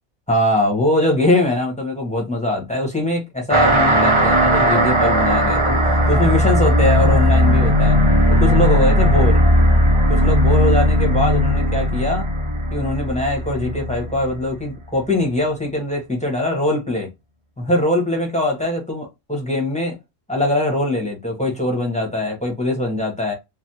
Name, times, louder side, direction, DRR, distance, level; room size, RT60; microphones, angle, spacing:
voice 1, 0.3-8.0 8.4-9.4 10.1-12.3 12.7-17.1 17.6-20.0 20.3-23.3, left 1 dB, 5° left, 0.8 m, -22 dB
sound 1, 3.5-14.5, equal, 50° right, 0.3 m, -17 dB
3.3 x 2.1 x 2.8 m
omnidirectional pair, 1.5 m